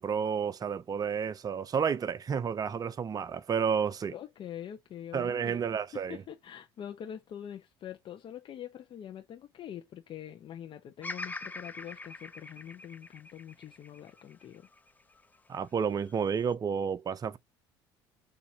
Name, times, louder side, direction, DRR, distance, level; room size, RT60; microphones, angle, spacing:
voice 1, 0.0-4.1 5.1-6.2 15.5-17.4, right 7 dB, 35° right, 0.7 m, -31 dB
voice 2, 4.0-5.6 5.9-14.7, left 10 dB, 50° left, 0.9 m, -44 dB
Bird vocalization bird call bird song, 11.0-15.2 15.8-16.5, left 3 dB, 15° left, 0.7 m, -43 dB
6.6 x 2.8 x 2.9 m
hypercardioid pair, 75°, 11 cm